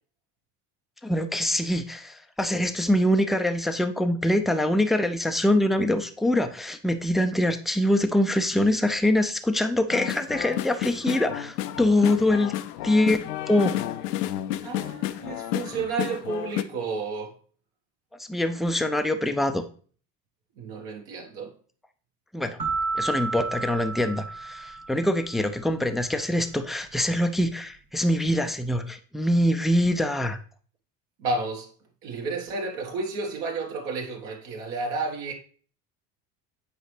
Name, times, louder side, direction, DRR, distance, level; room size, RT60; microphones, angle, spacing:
voice 1, 1.0-12.5 12.8-13.7 18.3-19.6 22.3-22.6 22.9-30.4, left 1 dB, ahead, 0.4 m, -24 dB
sound 1, 9.9-16.6, left 13 dB, 70° left, 0.6 m, -31 dB
voice 2, 14.6-17.4 20.6-21.5 31.2-31.7 32.0-35.3, right 3 dB, 60° right, 1.4 m, -31 dB
sound 2, 22.6-25.4, right 4 dB, 85° right, 1.5 m, -31 dB
8.3 x 4.9 x 3.2 m
figure-of-eight pair, 60°, 50 cm